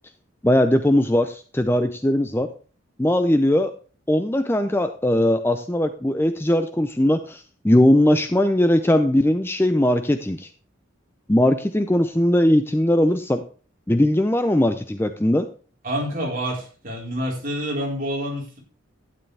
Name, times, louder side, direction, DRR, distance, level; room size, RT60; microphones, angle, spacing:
voice 1, 0.4-2.5 3.0-3.7 4.1-10.5 11.3-13.4 13.9-15.5, left 1 dB, 10° left, 8 dB, 0.5 m, -19 dB
voice 2, 15.8-18.6, equal, 45° right, -3 dB, 4.3 m, -27 dB
12.0 x 9.6 x 3.4 m, 0.38 s
head